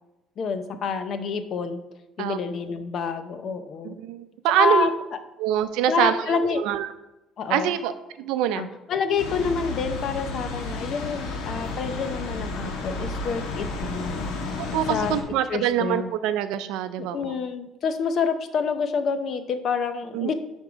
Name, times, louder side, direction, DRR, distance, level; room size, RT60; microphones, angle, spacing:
voice 1, 0.4-1.8 2.2-4.0 4.6-4.9 5.9-6.6 7.4-7.7 8.5-14.2 14.9-15.1 15.5-16.1 17.0-20.3, left 5 dB, 45° left, 9 dB, 0.7 m, -27 dB
voice 2, 3.8-4.9 5.4-6.9 7.5-8.7 14.6-17.3 20.1-20.3, right 11 dB, 85° right, 11 dB, 0.5 m, -25 dB
sound 1, 9.2-15.2, left 3 dB, 80° left, 1.4 m, -32 dB
10.5 x 3.6 x 5.0 m, 0.96 s
cardioid pair, 135°, 0 cm